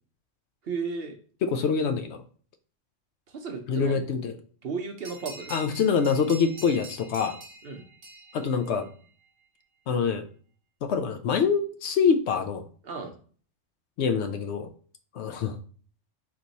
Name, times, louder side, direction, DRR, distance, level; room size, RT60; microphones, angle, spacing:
voice 1, 0.6-1.2 3.3-4.0 4.6-5.5 7.6-7.8 12.8-13.1, right 4 dB, 55° right, 4 dB, 0.9 m, -34 dB
voice 2, 1.4-2.2 3.7-4.3 5.5-7.4 8.3-8.9 9.9-10.2 10.8-12.6 14.0-14.7 15.1-15.6, left 6 dB, 70° left, 8 dB, 0.8 m, -25 dB
sound 1, 5.0-9.3, right 3 dB, 80° right, 1.3 m, -45 dB
4.3 x 3.0 x 3.9 m, 0.43 s
omnidirectional pair, 1.3 m